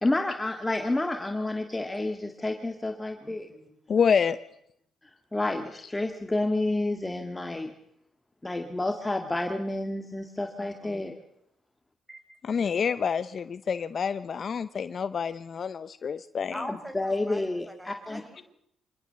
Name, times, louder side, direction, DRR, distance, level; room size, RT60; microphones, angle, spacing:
voice 1, 0.0-3.5 5.3-7.7 8.4-11.2 16.9-18.2, left 2 dB, 15° left, 5 dB, 2.0 m, -29 dB
voice 2, 3.2-3.7 10.6-11.0 12.1-12.4 16.5-18.4, equal, 5° right, 7 dB, 4.9 m, -43 dB
voice 3, 3.9-4.4 12.4-16.5, left 6 dB, 50° left, 13 dB, 0.8 m, -27 dB
25.0 x 18.5 x 6.9 m, 0.75 s
cardioid pair, 90°, 0 cm